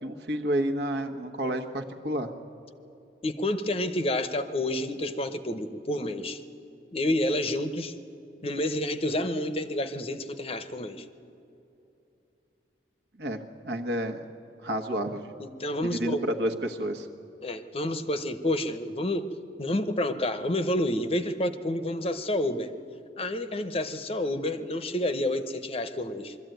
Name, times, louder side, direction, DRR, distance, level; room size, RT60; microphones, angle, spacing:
voice 1, 0.0-2.3 13.2-14.3 14.6-15.3 15.8-17.1, right 1 dB, 65° right, 4 dB, 1.3 m, -30 dB
voice 2, 3.2-6.4 6.9-7.9 8.4-11.0 15.4-16.2 17.4-19.3 19.6-22.7 23.2-26.3, left 1 dB, 35° left, 11 dB, 0.8 m, -29 dB
22.5 x 13.5 x 9.2 m, 2.8 s
head